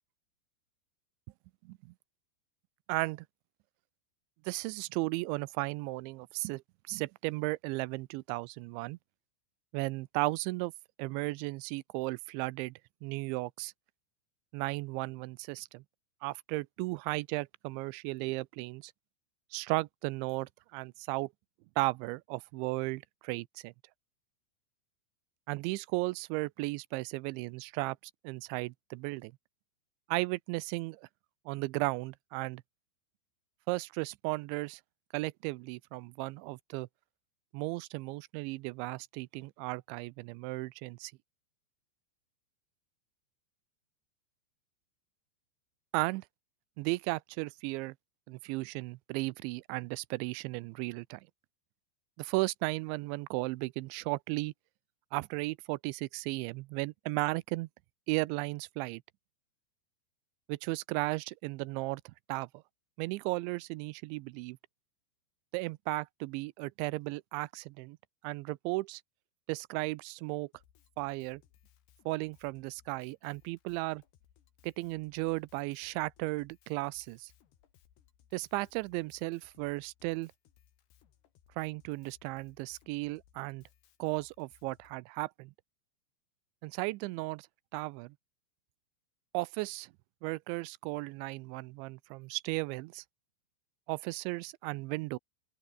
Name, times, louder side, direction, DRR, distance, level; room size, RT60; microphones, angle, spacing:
voice 1, 2.9-3.3 4.5-6.6 6.9-9.0 9.7-10.7 11.0-12.7 13.0-13.7 14.5-15.8 16.2-18.9 19.5-21.3 21.8-23.7 25.5-28.0 28.2-29.3 30.1-31.1 31.5-32.6 33.7-34.8 35.1-36.9 37.5-41.1 45.9-46.2 46.8-47.9 48.3-51.2 52.2-54.5 55.1-57.7 58.1-59.0 60.5-62.5 63.0-64.6 65.5-68.0 68.2-69.0 69.5-70.5 71.0-71.4 72.1-74.0 74.6-77.3 78.3-80.3 81.6-83.6 84.0-85.5 86.6-87.5 87.7-88.1 89.3-89.9 90.2-93.0 93.9-95.2, right 23 dB, 85° right, 2.9 m, -35 dB
Drum kit, 70.5-85.0, left 10 dB, 65° left, 4.2 m, -66 dB
open air
omnidirectional pair, 5.3 m